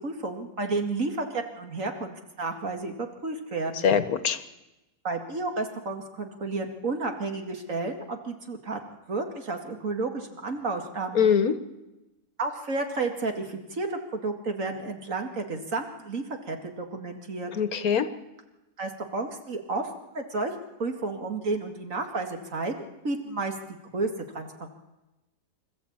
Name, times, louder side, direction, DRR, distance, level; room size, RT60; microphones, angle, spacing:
voice 1, 0.0-3.9 5.0-8.8 9.1-11.3 12.4-17.5 18.8-20.5 20.8-23.5 23.9-24.7, right 3 dB, 55° right, 4 dB, 2.6 m, -32 dB
voice 2, 3.8-4.4 11.2-11.5 17.6-18.1, left 7 dB, 65° left, 12 dB, 1.5 m, -22 dB
25.5 x 14.5 x 8.7 m, 1.0 s
omnidirectional pair, 1.7 m